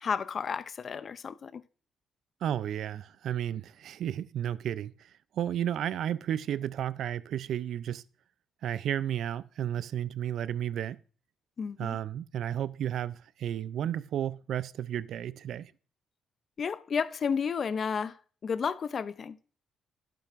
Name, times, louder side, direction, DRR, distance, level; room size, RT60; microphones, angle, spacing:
voice 1, 0.0-1.6 11.6-12.0 16.6-18.2 18.4-19.4, left 6 dB, 50° left, 0.4 m, -32 dB
voice 2, 2.4-4.9 5.3-8.0 8.6-11.0 11.8-15.7, right 10 dB, 70° right, 0.4 m, -32 dB
11.0 x 8.5 x 2.5 m
cardioid pair, 90°, 0 cm